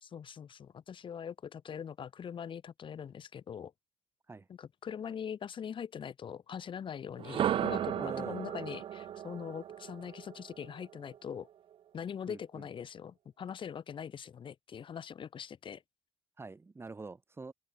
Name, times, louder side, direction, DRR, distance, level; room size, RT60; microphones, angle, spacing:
voice 1, 0.0-3.7 4.5-11.5 11.9-15.8, left 8 dB, 50° left, 2.5 m, -42 dB
sound 1, 7.2-11.2, right 10 dB, 50° right, 0.5 m, -35 dB
voice 2, 8.0-8.4 12.3-12.7 16.4-17.5, right 3 dB, 20° right, 1.4 m, -45 dB
supercardioid pair, 80°, 11 cm